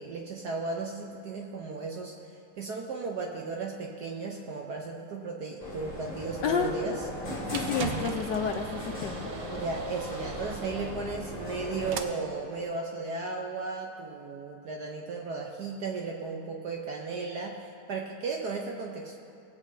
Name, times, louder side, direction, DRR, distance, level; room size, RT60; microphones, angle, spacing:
voice 1, 0.0-2.1 2.6-7.1 9.5-19.2, right 4 dB, 65° right, 0 dB, 1.0 m, -35 dB
sound 1, 5.6-12.0, left 1 dB, 20° left, 1.8 m, -38 dB
sound 2, 6.0-12.0, right 8 dB, 80° right, 1.5 m, -41 dB
voice 2, 6.4-6.7 7.5-9.3, left 7 dB, 75° left, 3 dB, 1.1 m, -30 dB
21.0 x 8.2 x 2.7 m, 2.6 s
omnidirectional pair, 2.4 m